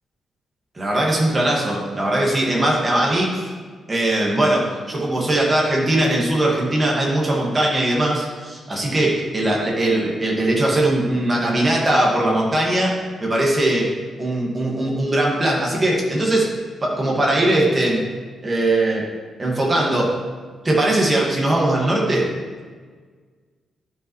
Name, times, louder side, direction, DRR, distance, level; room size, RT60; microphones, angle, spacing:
voice 1, 0.8-3.5 3.9-12.9 13.2-13.9 14.2-16.5 16.8-18.0 18.4-19.1 19.4-20.2 20.6-22.3, right 1 dB, 25° right, -3 dB, 1.8 m, -20 dB
11.5 x 5.2 x 3.1 m, 1.5 s
cardioid pair, 125°, 0 cm